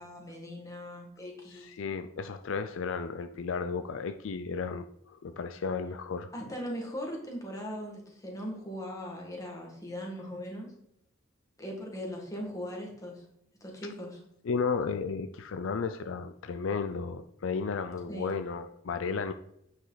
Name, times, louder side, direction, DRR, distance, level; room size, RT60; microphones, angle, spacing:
voice 1, 0.0-1.7 6.3-10.7 11.6-13.3 13.6-14.2 18.1-18.3, equal, 15° left, -1 dB, 1.8 m, -39 dB
voice 2, 1.5-6.3 14.4-19.3, left 5 dB, 70° left, 9 dB, 0.4 m, -33 dB
9.0 x 5.2 x 4.0 m, 0.78 s
head